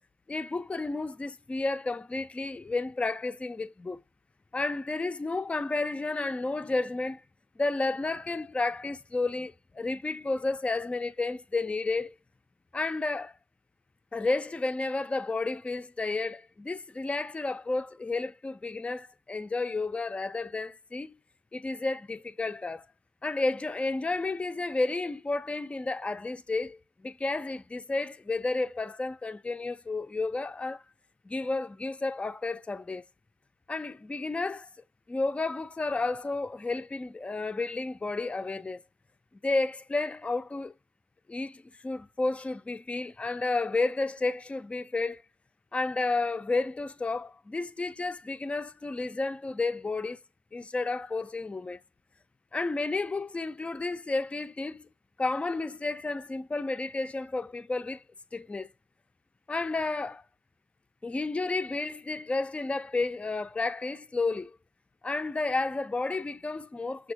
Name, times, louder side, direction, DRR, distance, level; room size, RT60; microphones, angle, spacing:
voice 1, 0.3-4.0 4.5-7.2 7.6-12.1 12.7-13.3 14.1-21.1 21.5-22.8 23.2-26.8 27.0-30.8 31.3-33.0 33.7-34.7 35.1-38.8 39.4-40.7 41.3-45.2 45.7-50.2 50.5-51.8 52.5-54.9 55.2-58.0 58.3-58.7 59.5-60.2 61.0-64.5 65.0-67.1, left 3 dB, 20° left, 0.4 m, -31 dB
6.0 x 2.3 x 2.7 m
cardioid pair, 80°, 6 cm